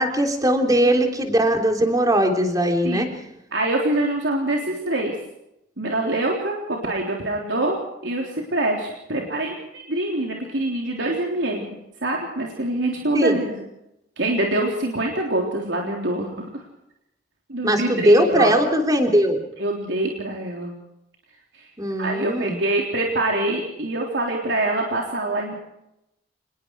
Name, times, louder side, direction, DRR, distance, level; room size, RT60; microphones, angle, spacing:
voice 1, 0.0-3.1 13.1-13.3 17.6-19.4 21.8-22.6, right 1 dB, 20° right, 3 dB, 3.4 m, -19 dB
voice 2, 2.8-3.2 3.5-5.2 5.8-13.6 14.2-16.6 17.5-18.5 19.6-20.7 21.5-21.7 22.0-25.5, right 1 dB, 85° right, -1 dB, 3.6 m, -25 dB
26.5 x 20.5 x 4.7 m, 0.83 s
head